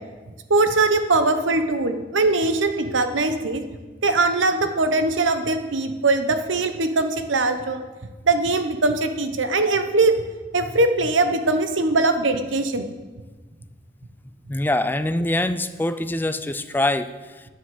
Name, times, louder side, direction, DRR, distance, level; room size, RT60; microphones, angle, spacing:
voice 1, 0.5-3.6 4.0-7.8 8.2-10.2 10.5-12.9, right 3 dB, 80° right, 8 dB, 1.0 m, -21 dB
voice 2, 14.5-17.5, left 1 dB, 10° left, 11 dB, 0.4 m, -24 dB
9.7 x 7.6 x 7.9 m, 1.3 s
head